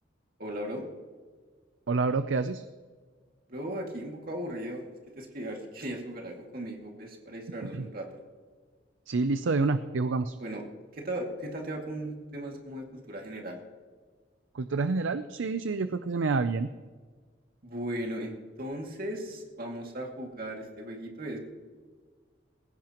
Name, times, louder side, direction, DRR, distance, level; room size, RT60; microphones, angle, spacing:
voice 1, 0.4-0.9 3.5-4.8 5.2-8.1 10.4-10.6 10.9-13.6 17.6-21.4, right 1 dB, 50° right, 1 dB, 2.3 m, -37 dB
voice 2, 1.9-2.6 7.7-7.8 9.1-10.3 14.5-16.7, right 3 dB, 90° right, 11 dB, 0.5 m, -28 dB
20.0 x 16.5 x 3.0 m, 1.5 s
head